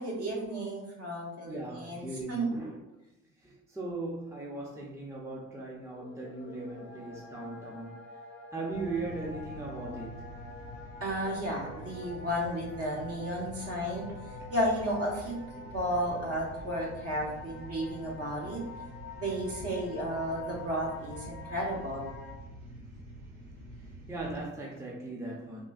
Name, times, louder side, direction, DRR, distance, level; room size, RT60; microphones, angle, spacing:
voice 1, 0.0-2.5 11.0-14.1 14.5-18.6 19.2-22.1, equal, 50° right, -3 dB, 1.2 m, -33 dB
voice 2, 1.5-2.8 3.4-8.0 8.5-10.2 24.1-25.6, right 2 dB, 10° right, -3 dB, 0.6 m, -38 dB
sound 1, 5.8-22.3, left 3 dB, 40° left, 0.6 m, -47 dB
sound 2, 8.7-24.4, right 1 dB, 80° right, 0.9 m, -47 dB
3.6 x 2.6 x 2.4 m, 0.93 s
cardioid pair, 90°, 30 cm